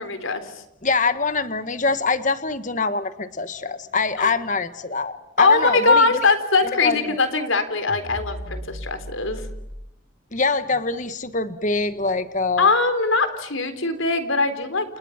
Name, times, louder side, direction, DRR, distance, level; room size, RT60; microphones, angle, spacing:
voice 1, 0.0-0.6 4.2-4.3 5.4-9.5 12.6-15.0, left 3 dB, 80° left, 10 dB, 3.8 m, -21 dB
voice 2, 0.8-6.0 6.8-7.2 10.3-12.7, left 4 dB, 40° left, 11 dB, 1.6 m, -24 dB
sound 1, 7.9-9.7, equal, 85° right, 7.0 m, -35 dB
30.0 x 30.0 x 5.9 m, 0.80 s
head